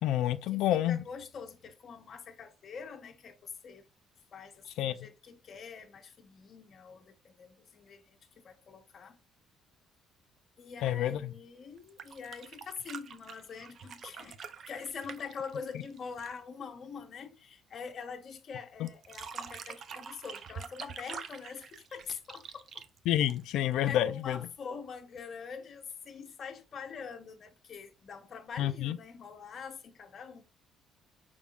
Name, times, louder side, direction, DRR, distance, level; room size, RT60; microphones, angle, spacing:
voice 1, 0.0-1.0 4.8-5.0 10.8-11.3 18.8-18.9 23.1-24.4 28.6-29.0, left 12 dB, 75° left, 0.4 m, -29 dB
voice 2, 0.5-3.9 4.3-8.2 8.4-9.2 10.6-14.4 14.7-22.9 23.8-30.4, left 6 dB, 40° left, 0.9 m, -44 dB
sound 1, 11.8-16.5 18.9-23.7 25.2-25.3, right 6 dB, 45° right, 0.5 m, -46 dB
5.3 x 3.5 x 2.4 m
cardioid pair, 135°, 0 cm